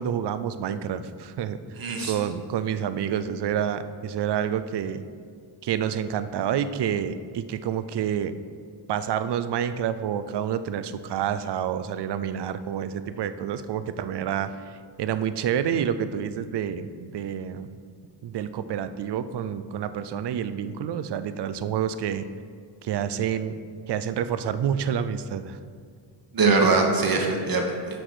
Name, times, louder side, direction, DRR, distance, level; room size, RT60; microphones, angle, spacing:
voice 1, 0.0-1.6 2.0-5.0 5.6-8.4 8.9-14.5 15.0-17.7 18.2-22.3 22.8-23.5 23.9-25.6, right 9 dB, 75° right, 12 dB, 0.5 m, -28 dB
voice 2, 1.8-2.1 26.3-28.0, right 3 dB, 55° right, 2 dB, 1.1 m, -22 dB
6.1 x 4.9 x 6.2 m, 2.1 s
wide cardioid pair, 120°, 41 cm